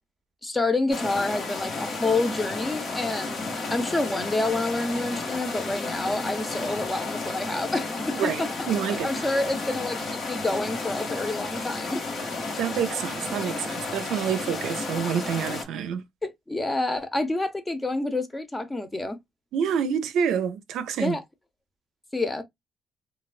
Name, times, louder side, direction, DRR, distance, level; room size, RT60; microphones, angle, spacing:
voice 1, 0.4-8.5 9.0-12.0 16.2-19.2 21.0-21.2 22.1-22.4, left 2 dB, 20° left, 0.7 m, -28 dB
sound 1, 0.9-15.7, left 3 dB, 55° left, 1.1 m, -32 dB
voice 2, 8.2-9.3 12.6-16.0 19.5-21.2, right 7 dB, 80° right, 0.4 m, -27 dB
3.1 x 2.3 x 2.3 m
cardioid pair, 90°, 0 cm